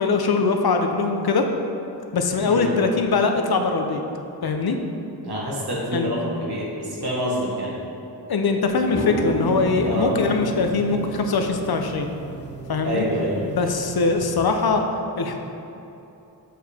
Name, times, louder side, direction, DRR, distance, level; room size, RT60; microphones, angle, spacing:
voice 1, 0.0-1.5 2.1-4.0 4.4-4.8 5.9-6.1 8.3-12.1 12.7-13.0 13.4-14.8 15.2-15.4, left 4 dB, 65° left, 5 dB, 0.7 m, -22 dB
voice 2, 5.2-7.8 9.8-10.1 12.8-13.4, equal, 70° right, -5 dB, 1.4 m, -27 dB
sound 1, 8.7-14.7, right 1 dB, 25° left, 0.9 m, -33 dB
7.6 x 4.8 x 3.4 m, 2.9 s
wide cardioid pair, 70°, 40 cm